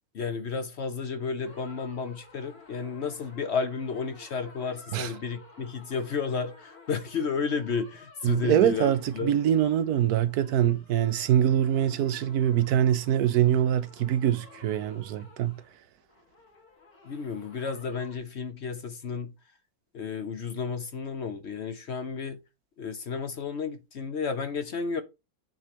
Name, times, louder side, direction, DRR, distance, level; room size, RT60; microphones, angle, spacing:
voice 1, 0.1-9.3 17.0-19.3 19.9-22.4 22.8-25.0, left 5 dB, 50° left, 0.9 m, -32 dB
sound 1, 1.4-18.2, left 3 dB, 70° left, 3.0 m, -53 dB
voice 2, 8.2-15.6, right 10 dB, 75° right, 1.2 m, -24 dB
8.9 x 3.3 x 5.8 m
omnidirectional pair, 1.6 m